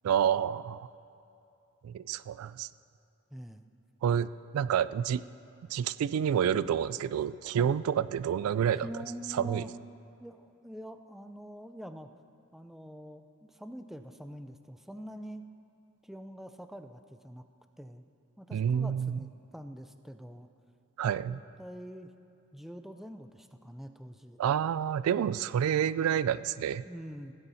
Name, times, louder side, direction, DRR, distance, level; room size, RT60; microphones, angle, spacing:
voice 1, 0.0-0.9 1.8-2.7 4.0-5.2 5.7-8.9 9.3-9.6 18.5-19.2 21.0-21.4 24.4-26.8, right 8 dB, 80° right, 17 dB, 0.3 m, -28 dB
voice 2, 3.3-3.7 7.6-7.8 8.8-9.7 10.2-12.1 12.5-15.4 16.0-17.4 17.8-18.0 18.4-20.5 21.3-22.1 22.5-24.4 26.8-27.3, equal, ahead, 8 dB, 0.4 m, -45 dB
16.0 x 8.2 x 5.6 m, 2.7 s
head